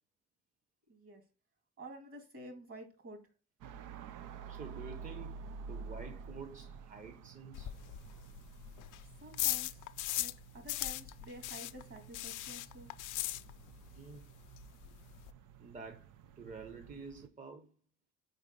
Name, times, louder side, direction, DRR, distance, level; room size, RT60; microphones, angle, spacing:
voice 1, 0.9-1.2 1.8-3.2 9.2-9.8 10.2-12.9, right 1 dB, 50° right, 2.2 m, -50 dB
Street Noise, 3.6-17.3, right 5 dB, 90° right, 0.5 m, -50 dB
voice 2, 4.5-7.7 13.9-14.2 15.6-16.1 16.3-17.7, right 4 dB, 25° right, 0.8 m, -49 dB
sound 1, 7.5-10.4 10.7-13.9 14.1-14.2 14.6-14.7 14.8-15.3, left 15 dB, 85° left, 0.5 m, -38 dB
4.7 x 4.1 x 5.2 m
cardioid pair, 90°, 30 cm